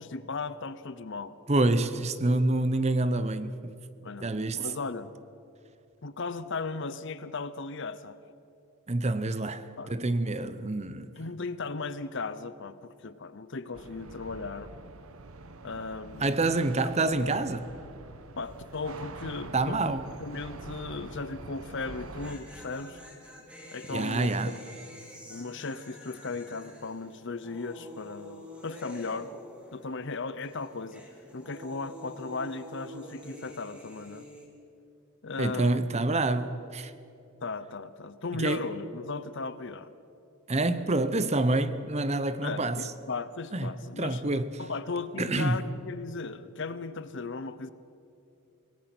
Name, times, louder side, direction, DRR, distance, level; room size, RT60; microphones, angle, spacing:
voice 1, 0.0-1.3 4.0-5.1 6.0-8.2 9.8-10.0 11.2-14.7 15.6-16.4 18.4-23.0 23.7-24.3 25.3-29.3 29.7-31.0 31.3-34.3 35.2-35.8 37.4-39.9 42.4-44.2 44.6-47.7, left 3 dB, 55° left, 0.9 m, -36 dB
voice 2, 1.5-3.7 4.2-4.7 8.9-11.1 16.2-17.7 19.5-20.0 23.9-24.6 35.4-36.9 38.4-38.6 40.5-42.9 43.5-44.5 45.2-45.6, right 2 dB, 30° right, 0.8 m, -27 dB
sound 1, 13.7-22.3, right 2 dB, 75° right, 1.1 m, -45 dB
sound 2, 18.4-18.8 19.0-19.1 21.8-30.2 30.4-34.4, equal, 5° right, 3.3 m, -48 dB
25.5 x 18.5 x 6.1 m
head